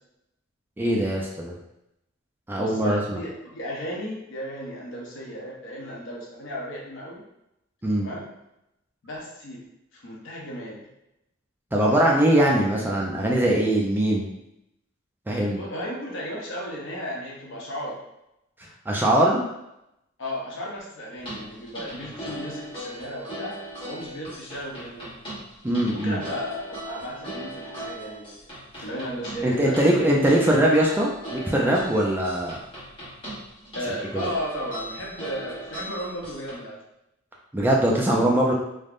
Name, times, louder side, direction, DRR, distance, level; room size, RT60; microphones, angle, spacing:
voice 1, 0.8-1.5 2.5-3.2 7.8-8.1 11.7-14.3 15.3-15.6 18.9-19.4 25.6-26.2 29.4-32.6 34.1-34.3 37.5-38.5, right 1 dB, 10° right, -2 dB, 0.3 m, -21 dB
voice 2, 2.6-7.2 8.0-8.3 9.0-9.6 9.9-10.8 15.5-18.0 20.2-25.2 25.9-28.5 28.8-30.2 33.7-36.8, equal, 65° left, -3 dB, 0.8 m, -35 dB
sound 1, 21.2-36.5, right 1 dB, 25° left, 0.9 m, -39 dB
3.3 x 2.0 x 2.4 m, 0.85 s
head